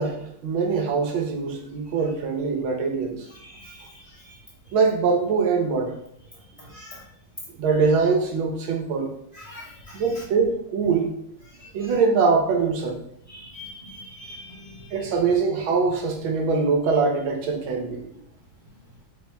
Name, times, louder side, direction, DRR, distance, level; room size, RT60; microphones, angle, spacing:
voice 1, 0.0-3.3 4.7-5.9 7.6-9.1 9.9-11.1 11.7-13.0 14.9-18.0, right 4 dB, 80° right, 1 dB, 1.6 m, -23 dB
voice 2, 3.3-4.4 6.6-7.0 9.3-10.2 11.5-11.9 13.3-15.1, left 1 dB, 35° right, -6 dB, 0.5 m, -44 dB
4.2 x 2.1 x 4.4 m, 0.71 s
omnidirectional pair, 2.2 m